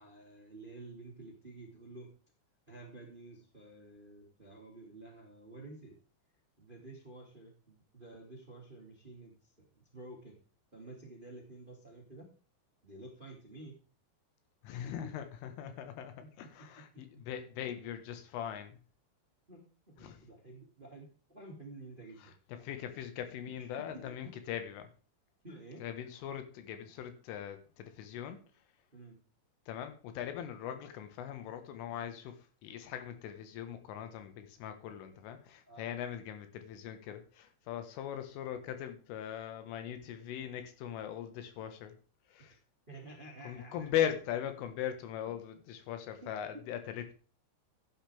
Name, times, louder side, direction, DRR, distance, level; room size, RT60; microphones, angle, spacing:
voice 1, 0.0-2.1 2.7-6.0 6.6-10.3 10.7-12.3 12.8-13.8 14.8-14.9 15.4-15.7 16.2-16.5 17.3-17.9 19.5-22.3 23.6-24.4 25.4-25.8 28.9-29.2 35.7-35.9 42.9-44.1 45.2-45.3 46.2-46.7, right 2 dB, 20° right, 1 dB, 1.3 m, -51 dB
voice 2, 14.6-16.1 16.4-18.8 20.0-20.2 22.6-24.9 25.8-28.4 29.7-32.4 32.6-41.9 42.3-42.5 43.5-47.1, left 10 dB, 90° left, 8 dB, 4.1 m, -40 dB
12.5 x 10.5 x 3.5 m, 0.37 s
omnidirectional pair, 5.6 m